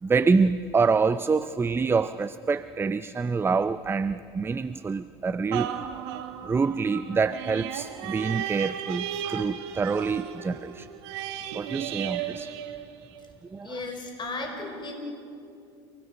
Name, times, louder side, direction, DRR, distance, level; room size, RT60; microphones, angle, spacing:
voice 1, 0.0-5.9 6.4-10.9 11.5-12.5 13.5-13.7, right 4 dB, 15° right, 13 dB, 0.5 m, -26 dB
sound 1, 5.5-13.4 13.9-14.0, right 10 dB, 80° right, 1.7 m, -35 dB
voice 2, 13.6-14.9, left 3 dB, 35° left, 3 dB, 5.1 m, -35 dB
29.5 x 19.5 x 6.4 m, 2.6 s
supercardioid pair, 95°, 14 cm